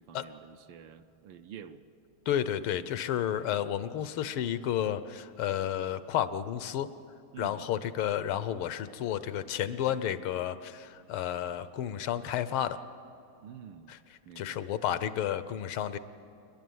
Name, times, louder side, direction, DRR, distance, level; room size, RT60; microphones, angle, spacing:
voice 1, 0.0-1.8 3.4-3.5 7.3-7.7 13.4-14.0 14.2-14.6, right 8 dB, 70° right, 10 dB, 1.3 m, -48 dB
voice 2, 2.3-6.9 7.4-12.8 13.9-14.0 14.4-16.0, left 10 dB, 80° left, 14 dB, 1.6 m, -31 dB
29.0 x 11.0 x 9.3 m, 2.6 s
omnidirectional pair, 2.3 m